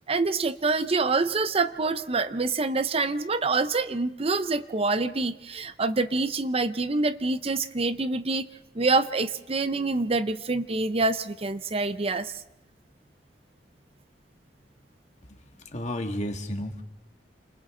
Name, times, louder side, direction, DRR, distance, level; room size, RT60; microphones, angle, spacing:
voice 1, 0.1-8.4 8.7-12.3, right 3 dB, 35° right, 12 dB, 0.7 m, -26 dB
voice 2, 15.7-16.8, left 1 dB, 40° left, 4 dB, 2.0 m, -32 dB
28.5 x 26.5 x 3.9 m, 0.92 s
head